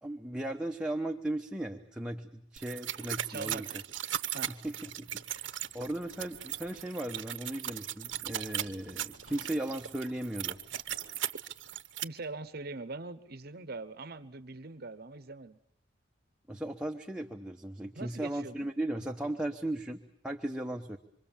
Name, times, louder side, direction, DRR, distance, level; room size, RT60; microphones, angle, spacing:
voice 1, 0.0-3.7 4.5-10.6 16.5-21.0, right 1 dB, 5° right, 2 dB, 1.0 m, -37 dB
sound 1, 2.6-12.0, right 11 dB, 85° right, 1.0 m, -38 dB
voice 2, 3.3-3.8 4.3-4.5 12.0-15.6 17.9-18.6, right 3 dB, 55° right, 11 dB, 1.0 m, -42 dB
sound 2, 4.6-11.4, equal, 60° left, 2.8 m, -60 dB
26.5 x 24.5 x 7.3 m, 0.69 s
head